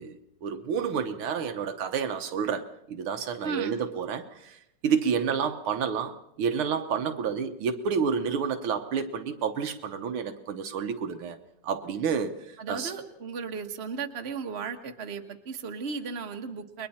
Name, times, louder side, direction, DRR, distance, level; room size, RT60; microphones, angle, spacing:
voice 1, 0.0-4.6 4.8-11.4 11.6-12.4 12.7-12.9, right 6 dB, 75° right, 7 dB, 2.0 m, -29 dB
voice 2, 3.4-3.8 12.6-16.9, right 5 dB, 35° right, 4 dB, 1.4 m, -35 dB
29.5 x 22.0 x 4.3 m, 0.82 s
omnidirectional pair, 2.4 m